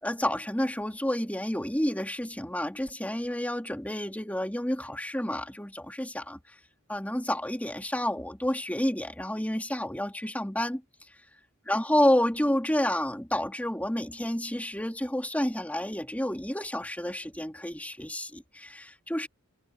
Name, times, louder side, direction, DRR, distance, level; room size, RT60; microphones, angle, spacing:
voice 1, 0.0-6.4 6.9-10.8 11.7-19.3, left 1 dB, 5° left, 3.0 m, -29 dB
head